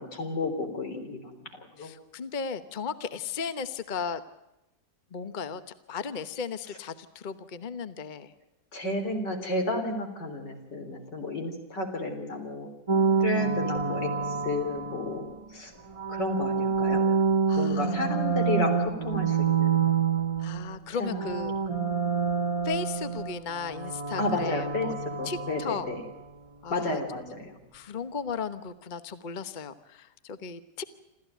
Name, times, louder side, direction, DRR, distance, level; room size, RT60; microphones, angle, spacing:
voice 1, 0.0-1.3 1.8-1.9 8.7-12.7 13.2-15.7 16.1-17.0 17.6-19.9 21.0-21.3 24.2-26.0 26.7-27.5, left 2 dB, 80° left, 5 dB, 4.3 m, -32 dB
voice 2, 1.8-4.2 5.1-5.6 5.9-8.3 17.5-18.0 20.4-21.6 22.6-24.9 25.2-25.9 26.6-27.0 27.7-30.8, left 5 dB, 30° left, 12 dB, 1.0 m, -35 dB
sound 1, 12.9-15.3 15.9-20.8 21.1-26.0, right 6 dB, 20° right, 1.9 m, -27 dB
27.5 x 14.5 x 9.2 m, 0.92 s
omnidirectional pair, 1.9 m